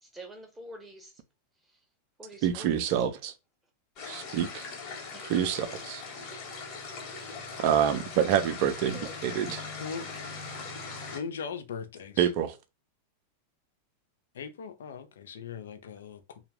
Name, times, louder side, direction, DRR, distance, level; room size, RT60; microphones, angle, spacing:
voice 1, 0.0-1.2 1.6-1.8 2.2-2.9 5.1-5.4 8.9-9.1, right 1 dB, 10° right, 0.8 m, -46 dB
voice 2, 2.4-3.3 4.1-4.7 5.3-6.0 7.6-9.7 12.2-12.5, right 9 dB, 45° right, 0.5 m, -27 dB
sound 1, 4.0-11.2, left 4 dB, 35° left, 1.1 m, -40 dB
voice 3, 11.1-12.3 14.3-16.4, left 6 dB, 60° left, 0.5 m, -39 dB
3.2 x 2.3 x 3.1 m
figure-of-eight pair, 90°, 0 cm